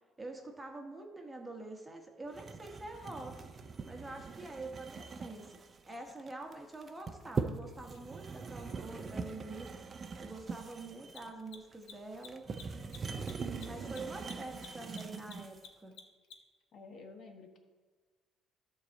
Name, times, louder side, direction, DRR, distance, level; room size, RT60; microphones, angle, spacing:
voice 1, 0.2-3.4 3.8-5.6 5.9-9.7 10.2-12.4 13.4-15.9, right 2 dB, 10° right, 2 dB, 1.2 m, -46 dB
sound 1, 2.3-15.7, right 5 dB, 30° right, 0.6 m, -42 dB
Mechanisms, 7.9-8.0 11.0-16.6, left 7 dB, 80° left, 1.0 m, -52 dB
voice 2, 16.7-17.6, left 3 dB, 45° left, 3 dB, 1.3 m, -51 dB
12.0 x 4.1 x 7.2 m, 1.4 s
cardioid pair, 140°, 0 cm